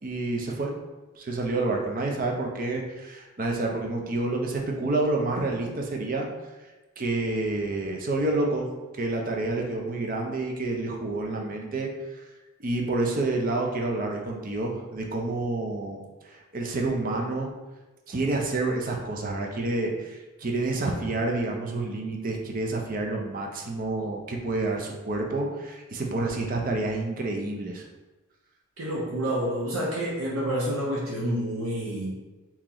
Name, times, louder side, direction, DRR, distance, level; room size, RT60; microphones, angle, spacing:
voice 1, 0.0-0.7 1.2-6.3 7.0-11.9 12.6-16.0 16.3-17.5 18.1-27.8, right 2 dB, 40° right, 1 dB, 0.5 m, -28 dB
voice 2, 28.8-32.2, equal, 75° right, -5 dB, 0.8 m, -28 dB
3.0 x 2.9 x 3.7 m, 1.1 s
head